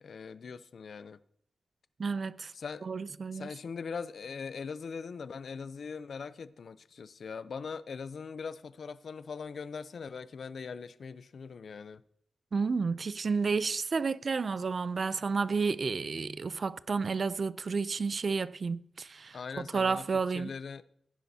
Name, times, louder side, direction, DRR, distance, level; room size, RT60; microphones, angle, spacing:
voice 1, 0.0-1.2 2.5-2.9 3.3-12.0 19.3-20.1 20.3-20.8, left 5 dB, 70° left, 0.5 m, -41 dB
voice 2, 2.0-2.5 2.8-3.5 12.5-20.5, right 4 dB, 55° right, 0.4 m, -31 dB
16.0 x 10.0 x 2.8 m
cardioid pair, 85°, 0 cm